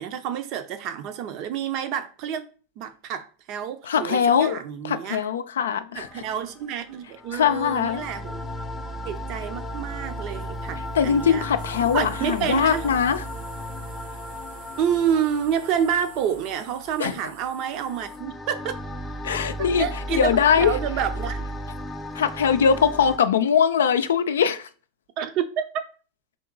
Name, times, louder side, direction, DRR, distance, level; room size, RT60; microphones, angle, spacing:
voice 1, 0.0-2.5 2.8-5.2 5.9-8.4 9.0-11.5 11.9-12.9 14.8-18.7 19.6-21.5 25.2-25.9, right 8 dB, 50° right, 0.6 m, -28 dB
voice 2, 3.8-4.6 4.8-6.2 7.3-8.0 10.9-13.2 17.0-17.1 19.2-20.7 22.1-24.7, left 7 dB, 85° left, 0.4 m, -21 dB
sound 1, 5.9-23.2, equal, 15° left, 0.6 m, -35 dB
sound 2, 11.6-18.2, right 3 dB, 90° right, 0.9 m, -47 dB
3.7 x 2.9 x 3.8 m
hypercardioid pair, 105°, 0 cm